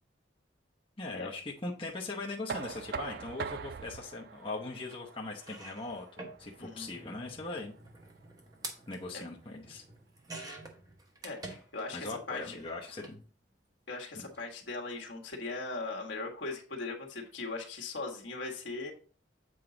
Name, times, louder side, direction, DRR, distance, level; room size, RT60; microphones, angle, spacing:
voice 1, 1.0-6.1 6.4-7.7 8.9-9.8 11.9-13.2, left 2 dB, 30° left, -2 dB, 0.8 m, -40 dB
Knock, 2.5-8.3, right 5 dB, 55° right, 0.3 m, -43 dB
sound 1, 4.9-5.0 5.4-12.1 12.4-13.2 14.2-14.4 14.6-14.7, right 2 dB, 20° right, 1.1 m, -48 dB
voice 2, 11.2-12.6 13.9-18.9, left 3 dB, 75° left, 0 dB, 1.5 m, -39 dB
7.8 x 4.6 x 3.9 m, 0.41 s
head